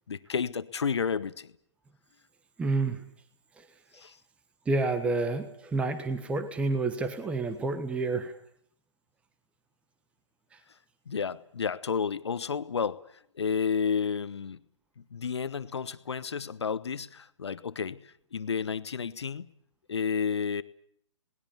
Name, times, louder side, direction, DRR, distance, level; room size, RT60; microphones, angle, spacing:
voice 1, 0.1-1.5 3.9-4.2 11.1-13.0 13.3-14.6 15.0-19.5 19.9-20.6, left 6 dB, 60° left, 15 dB, 1.2 m, -31 dB
voice 2, 2.6-3.0 3.6-3.7 4.7-8.3, right 3 dB, 5° right, 10 dB, 1.2 m, -29 dB
28.0 x 20.0 x 7.1 m, 0.67 s
figure-of-eight pair, 130°, 16 cm